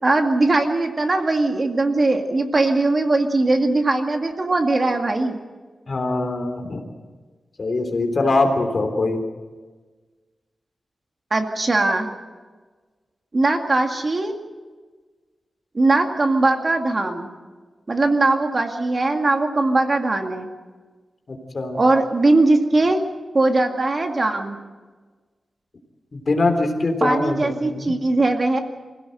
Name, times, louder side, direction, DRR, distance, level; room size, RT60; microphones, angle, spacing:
voice 1, 0.0-5.4 11.3-12.1 13.3-14.4 15.7-17.3 17.9-20.5 21.7-23.1 23.3-24.6 27.0-28.6, right 2 dB, 40° right, 4 dB, 2.1 m, -20 dB
voice 2, 5.9-6.8 7.6-9.2 21.3-21.8 26.1-27.9, left 2 dB, 45° left, 5 dB, 3.5 m, -23 dB
25.5 x 17.0 x 7.9 m, 1.4 s
wide cardioid pair, 125°, 0 cm